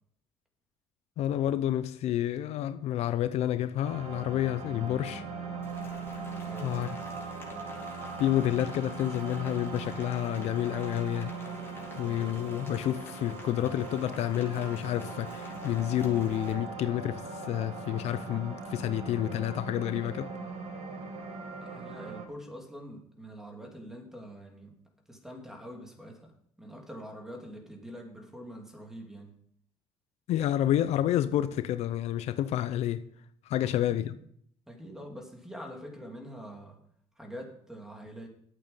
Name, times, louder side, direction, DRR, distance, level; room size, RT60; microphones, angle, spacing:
voice 1, 1.2-5.2 6.6-7.0 8.2-11.3 12.0-20.3 30.3-33.0 33.5-34.1, left 12 dB, 65° left, 0.6 m, -29 dB
sound 1, 3.8-22.3, right 4 dB, 60° right, 2.3 m, -40 dB
Rain, 5.6-16.5, left 3 dB, 20° left, 3.4 m, -51 dB
voice 2, 6.4-7.1 21.6-24.8 25.1-26.3 26.6-29.3 33.6-34.2 34.7-36.8 37.2-38.3, equal, 5° right, 3.0 m, -45 dB
11.5 x 8.6 x 5.6 m
cardioid pair, 115°, 12 cm